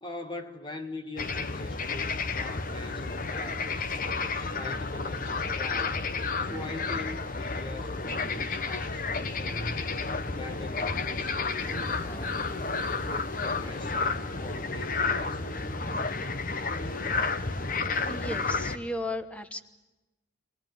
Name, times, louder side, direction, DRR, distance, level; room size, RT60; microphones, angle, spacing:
voice 1, 0.0-3.9 4.4-6.1 6.4-9.8 10.3-12.4 12.8-15.6, left 2 dB, 25° left, 1.6 m, -42 dB
sound 1, 1.2-18.8, left 4 dB, 45° left, 1.0 m, -31 dB
sound 2, 11.3-16.4, left 2 dB, 80° left, 2.2 m, -55 dB
voice 2, 18.0-19.6, left 1 dB, 5° left, 1.1 m, -35 dB
25.5 x 19.5 x 9.3 m
head